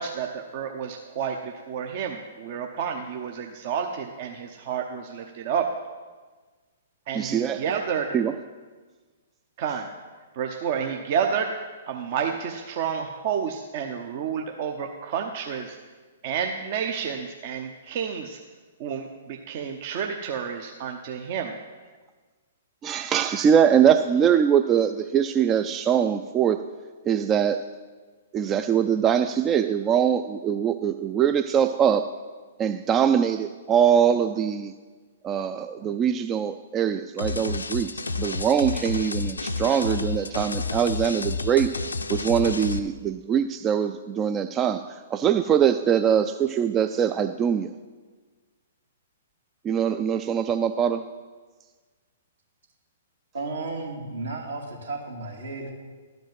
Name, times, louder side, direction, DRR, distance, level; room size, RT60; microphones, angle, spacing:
voice 1, 0.0-5.7 7.1-8.2 9.6-9.9 10.4-11.5 11.9-15.7 16.2-18.4 18.8-21.6, right 7 dB, 45° right, 4 dB, 0.7 m, -30 dB
voice 2, 7.1-7.6 8.1-8.4 22.8-26.7 27.0-27.6 28.3-32.1 32.6-34.7 35.2-41.7 42.1-47.7 49.6-51.0, right 8 dB, 20° right, 9 dB, 0.3 m, -23 dB
sound 1, 37.2-42.8, left 3 dB, 80° left, 0.5 m, -30 dB
voice 3, 53.3-55.7, right 3 dB, 70° right, 0 dB, 2.3 m, -33 dB
12.0 x 5.2 x 7.6 m, 1.4 s
figure-of-eight pair, 115°, 0 cm